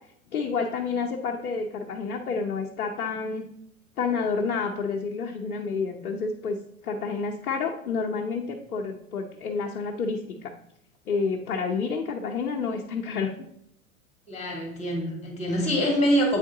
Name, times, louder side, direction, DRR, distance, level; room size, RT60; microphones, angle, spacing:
voice 1, 0.3-3.5 4.0-6.6 6.8-10.5 11.1-13.3, left 5 dB, 80° left, 0 dB, 0.9 m, -29 dB
voice 2, 14.3-16.4, equal, 15° left, 0 dB, 2.6 m, -25 dB
8.4 x 3.6 x 3.8 m, 0.74 s
hypercardioid pair, 105°, 43 cm